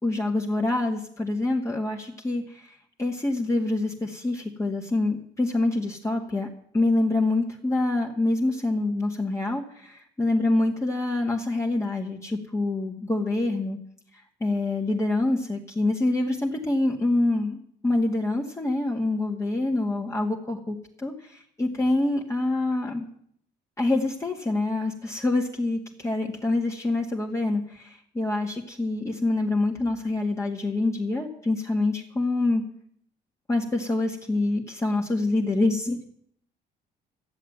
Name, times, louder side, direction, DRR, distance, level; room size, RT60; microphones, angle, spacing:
voice 1, 0.0-2.7 3.0-6.5 6.7-13.8 14.4-23.0 23.8-32.6 33.5-36.0, left 2 dB, 15° left, -1 dB, 2.0 m, -26 dB
14.0 x 7.5 x 9.4 m, 0.64 s
cardioid pair, 110°, 17 cm